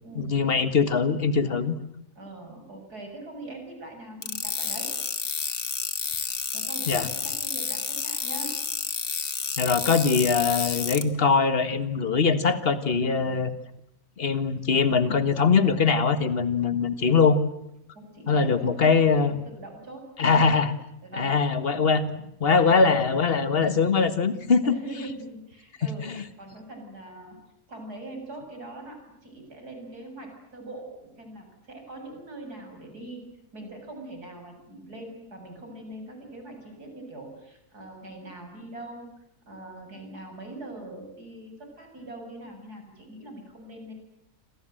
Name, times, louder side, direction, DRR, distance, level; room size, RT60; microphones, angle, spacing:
voice 1, 0.2-1.8 6.9-7.1 9.6-13.5 14.2-17.4 18.3-19.4 20.2-20.7 21.2-24.7 26.0-26.2, left 5 dB, 40° left, 11 dB, 1.8 m, -22 dB
voice 2, 2.2-4.9 6.5-8.5 17.9-20.1 21.0-21.3 22.5-22.9 24.6-26.1 26.4-27.4 27.7-33.2 33.5-39.1 39.5-43.9, right 2 dB, 85° right, 4 dB, 7.9 m, -42 dB
sound 1, 4.2-11.0, left 6 dB, 60° left, 1.9 m, -30 dB
28.5 x 26.0 x 7.8 m, 0.79 s
omnidirectional pair, 1.6 m